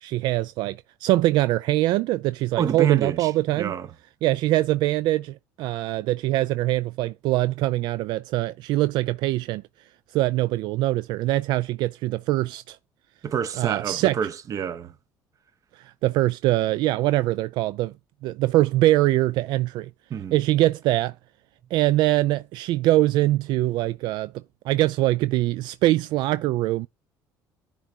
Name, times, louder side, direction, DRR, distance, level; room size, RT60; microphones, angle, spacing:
voice 1, 0.0-3.7 4.2-9.6 10.1-12.8 13.6-14.2 15.7-17.9 18.2-19.9 20.3-21.1 21.7-24.3 24.7-26.9, right 16 dB, 75° right, 0.3 m, -23 dB
voice 2, 2.6-3.9 13.2-14.9 20.1-20.4, right 8 dB, 45° right, 0.9 m, -28 dB
10.5 x 3.7 x 4.4 m
cardioid pair, 105°, 8 cm